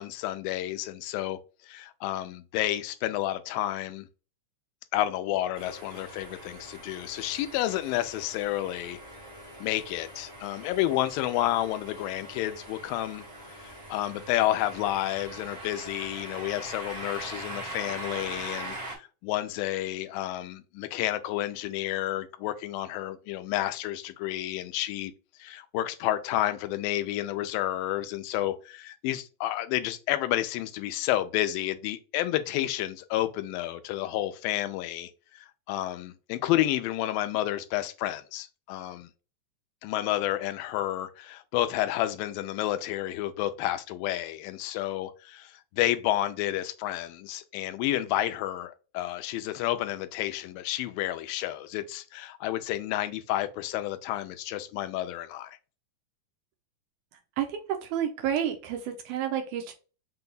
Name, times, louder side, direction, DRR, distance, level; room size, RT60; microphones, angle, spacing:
voice 1, 0.0-4.1 4.9-9.0 9.6-13.2 13.6-25.1 25.4-39.1 39.8-55.6, left 14 dB, 90° left, 2.3 m, -30 dB
sound 1, 5.5-19.0, right 1 dB, 30° right, 0.7 m, -42 dB
voice 2, 57.4-59.7, right 9 dB, 80° right, 1.9 m, -30 dB
6.1 x 2.3 x 3.8 m
omnidirectional pair, 3.9 m